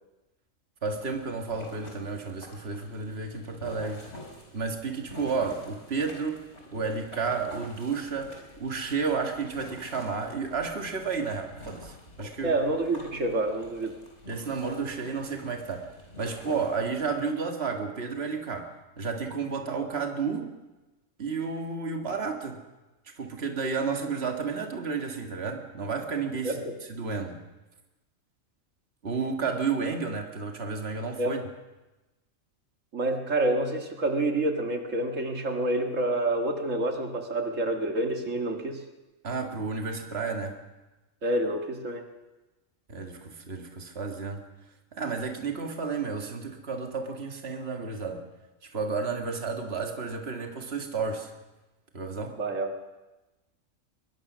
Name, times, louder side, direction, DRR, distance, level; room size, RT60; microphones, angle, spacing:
sound 1, 0.8-17.2, left 2 dB, 60° left, 5.0 m, -47 dB
voice 1, 0.8-4.0 4.5-6.4 6.7-12.5 14.3-15.9 16.2-18.7 19.0-20.5 21.2-22.6 23.2-26.6 26.9-27.4 29.0-31.4 39.2-40.6 42.9-44.4 44.9-48.3 48.6-51.3 51.9-52.4, right 5 dB, 50° right, 3 dB, 2.2 m, -32 dB
voice 2, 12.4-14.0 26.4-26.8 31.2-31.4 32.9-38.8 41.2-42.1 52.4-52.7, right 2 dB, 75° right, 3 dB, 2.2 m, -28 dB
22.5 x 21.5 x 6.3 m, 1.1 s
omnidirectional pair, 1.3 m